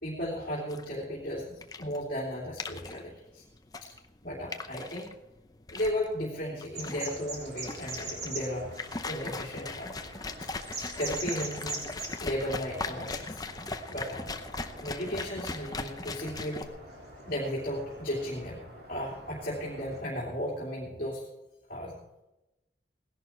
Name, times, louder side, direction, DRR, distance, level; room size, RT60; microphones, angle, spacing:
voice 1, 0.0-3.4 3.8-3.9 4.2-5.1 5.7-8.7 9.0-10.1 10.4-10.5 10.9-11.8 12.2-13.4 13.9-14.3 14.8-16.7 17.3-18.6 18.9-21.2 21.7-21.9, equal, 50° left, -7 dB, 2.9 m, -35 dB
sound 1, 0.7-16.7, left 3 dB, 20° left, 0.7 m, -39 dB
sound 2, 6.7-20.0, right 2 dB, 60° right, 3.6 m, -43 dB
18.0 x 11.0 x 4.5 m, 0.94 s
head